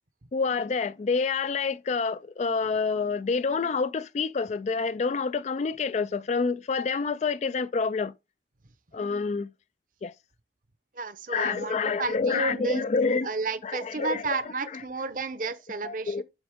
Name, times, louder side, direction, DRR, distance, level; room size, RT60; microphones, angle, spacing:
voice 1, 0.3-8.1 8.9-9.5 10.0-10.1 11.3-13.3 13.6-14.4 14.7-14.8 15.8-16.2, left 4 dB, 40° left, 0.3 m, -28 dB
voice 2, 11.0-12.8 13.2-16.2, right 3 dB, 45° right, 0.8 m, -32 dB
7.9 x 6.0 x 3.5 m
head